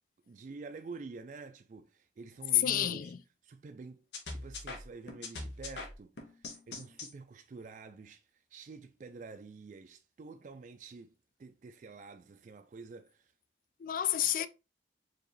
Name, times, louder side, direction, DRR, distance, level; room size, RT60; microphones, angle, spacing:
voice 1, 0.3-3.1 3.4-13.3, right 4 dB, 45° right, 0.3 m, -48 dB
voice 2, 2.6-3.2 13.8-14.5, left 10 dB, 50° left, 0.3 m, -31 dB
sound 1, 4.1-7.1, left 3 dB, 75° left, 0.9 m, -42 dB
4.6 x 3.0 x 3.1 m
head